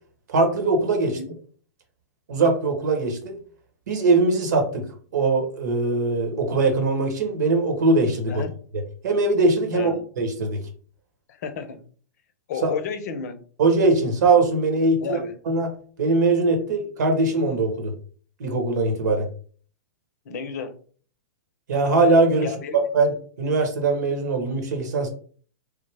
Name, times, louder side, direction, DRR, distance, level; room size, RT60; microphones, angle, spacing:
voice 1, 0.3-1.2 2.3-3.4 3.9-4.9 5.1-8.4 9.0-9.9 10.2-10.6 12.6-12.7 13.6-15.2 15.5-17.9 18.4-19.3 21.7-22.5 22.9-25.1, right 3 dB, 70° right, 4 dB, 1.1 m, -21 dB
voice 2, 11.3-11.8 12.5-13.4 15.0-15.4 20.3-20.7 22.4-22.8, left 6 dB, 60° left, 9 dB, 0.6 m, -32 dB
3.3 x 2.1 x 3.3 m, 0.43 s
hypercardioid pair, 115°, 10 cm